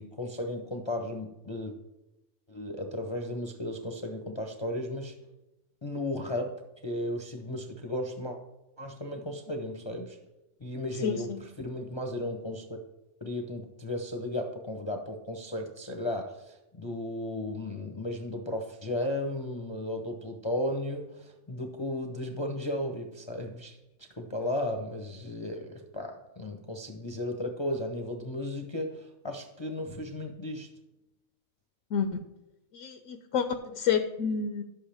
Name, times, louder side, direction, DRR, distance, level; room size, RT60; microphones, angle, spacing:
voice 1, 0.0-1.8 2.5-5.2 5.8-8.4 8.8-10.2 10.6-12.8 13.2-30.7, left 1 dB, 30° left, 3 dB, 0.6 m, -35 dB
voice 2, 11.0-11.4 31.9-32.1 32.7-33.5 33.7-34.6, left 7 dB, 75° left, 7 dB, 1.0 m, -29 dB
11.0 x 7.9 x 3.4 m, 0.96 s
omnidirectional pair, 1.3 m